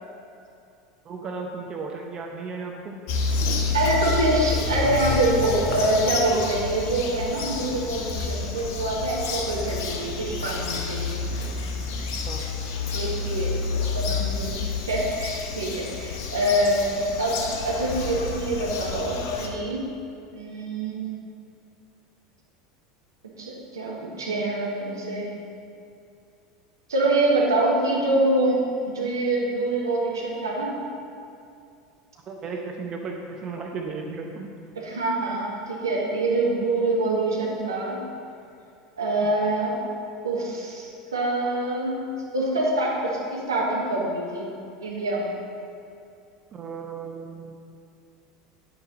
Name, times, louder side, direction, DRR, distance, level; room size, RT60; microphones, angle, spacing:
voice 1, 1.0-3.0 12.2-12.4 32.3-34.5 46.5-47.6, right 4 dB, 35° right, 1 dB, 0.9 m, -35 dB
Bird vocalization bird call bird song, 3.1-19.5, left 4 dB, 55° left, 1.1 m, -29 dB
voice 2, 3.7-11.2 12.9-14.5 14.8-19.9 20.3-21.2 23.4-25.3 26.9-28.6 28.9-30.8 34.8-38.0 39.0-39.8 40.2-42.0 42.3-44.5 44.8-45.3, right 2 dB, 80° right, -4 dB, 2.0 m, -25 dB
9.2 x 9.2 x 4.1 m, 2.6 s
figure-of-eight pair, 75°, 2 cm